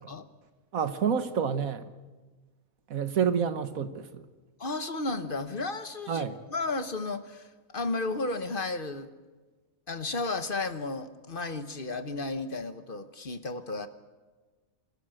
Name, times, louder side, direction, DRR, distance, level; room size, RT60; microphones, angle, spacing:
voice 1, 0.7-1.9 2.9-4.3 6.1-6.4, right 7 dB, 90° right, 1.6 m, -28 dB
voice 2, 4.6-9.1 9.9-13.9, left 3 dB, 45° left, 1.2 m, -33 dB
27.0 x 14.0 x 8.9 m
omnidirectional pair, 1.4 m